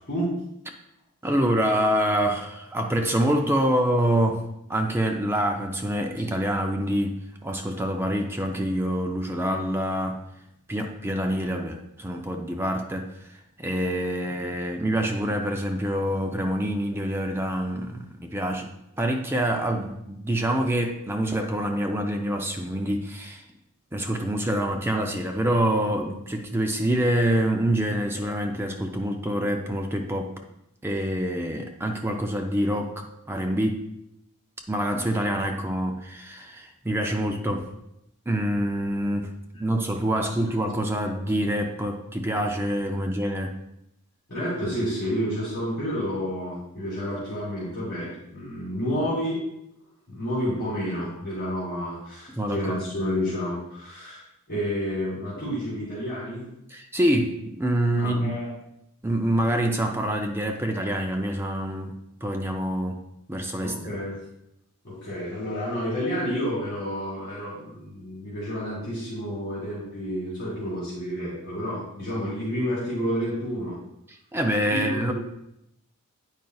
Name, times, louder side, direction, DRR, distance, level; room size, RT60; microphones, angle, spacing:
voice 1, 1.2-10.2 10.7-13.1 13.6-18.7 19.0-23.4 23.9-30.3 30.8-33.9 34.7-37.7 38.3-39.3 39.6-43.5 52.3-52.8 56.7-58.4 59.0-63.0 63.3-64.0 74.1-75.1, right 1 dB, 10° right, 3 dB, 0.4 m, -26 dB
voice 2, 44.3-49.4 50.1-56.4 58.0-58.5 63.6-64.2 64.8-73.8 74.6-75.1, equal, 45° left, -8 dB, 2.4 m, -30 dB
8.9 x 5.2 x 2.3 m, 0.82 s
head